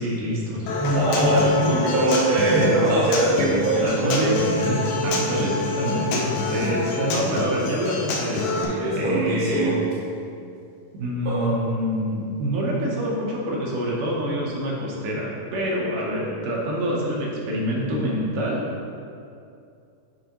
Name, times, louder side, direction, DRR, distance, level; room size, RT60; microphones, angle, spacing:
voice 1, 0.0-0.7 2.5-2.7 3.5-9.8 10.9-18.7, equal, 75° right, -3 dB, 2.3 m, -26 dB
Human voice / Acoustic guitar, 0.7-8.7, left 2 dB, 75° left, 1.8 m, -26 dB
voice 2, 0.8-4.4 8.8-9.8 11.2-11.5, right 2 dB, 45° right, -7 dB, 1.2 m, -21 dB
7.6 x 5.2 x 2.9 m, 2.5 s
omnidirectional pair, 4.1 m